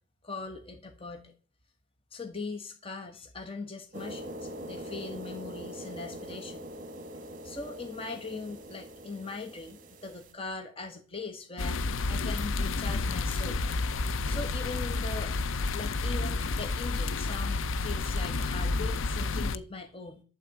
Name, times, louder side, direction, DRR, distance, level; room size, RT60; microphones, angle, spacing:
voice 1, 0.2-1.3 2.1-6.7 7.4-11.8 12.1-13.6 14.2-15.3 15.7-20.2, left 4 dB, 30° left, 4 dB, 1.3 m, -40 dB
sound 1, 3.9-10.3, equal, 40° right, 1.1 m, -43 dB
sound 2, 11.6-19.6, left 3 dB, 75° left, 0.5 m, -30 dB
12.0 x 4.2 x 7.6 m, 0.39 s
head